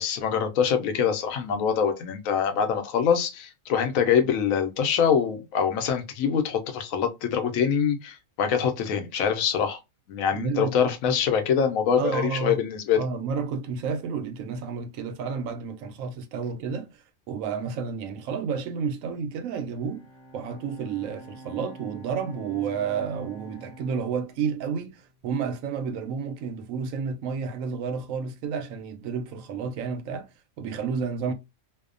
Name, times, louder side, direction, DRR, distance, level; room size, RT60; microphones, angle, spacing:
voice 1, 0.0-9.8 10.1-13.0, left 7 dB, 90° left, 1.0 m, -24 dB
voice 2, 10.3-11.2 12.0-12.6 12.9-16.9 17.3-20.1 20.3-30.3 30.6-31.3, right 6 dB, 85° right, 1.0 m, -31 dB
Bowed string instrument, 19.7-25.1, right 2 dB, 5° left, 0.5 m, -47 dB
2.7 x 2.1 x 2.4 m
omnidirectional pair, 1.4 m